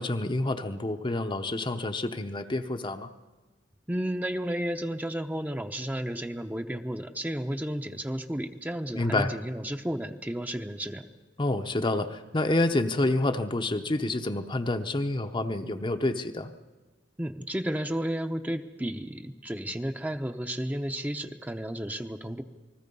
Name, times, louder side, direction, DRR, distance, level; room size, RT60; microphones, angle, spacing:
voice 1, 0.0-3.1 8.9-9.3 11.4-16.5, left 2 dB, 25° left, 7 dB, 0.8 m, -28 dB
voice 2, 3.9-11.0 17.2-22.4, right 1 dB, 10° right, 6 dB, 0.8 m, -32 dB
28.5 x 20.0 x 5.4 m, 1.3 s
head